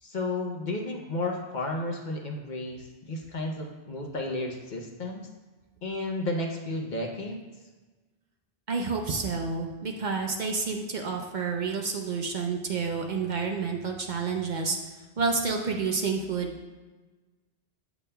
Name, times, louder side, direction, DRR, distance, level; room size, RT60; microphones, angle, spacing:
voice 1, 0.0-5.3 5.8-7.4, left 2 dB, 50° left, 1 dB, 0.8 m, -32 dB
voice 2, 8.7-14.8 15.2-16.5, right 4 dB, 50° right, 2 dB, 0.6 m, -29 dB
8.2 x 6.9 x 2.2 m, 1.3 s
omnidirectional pair, 1.1 m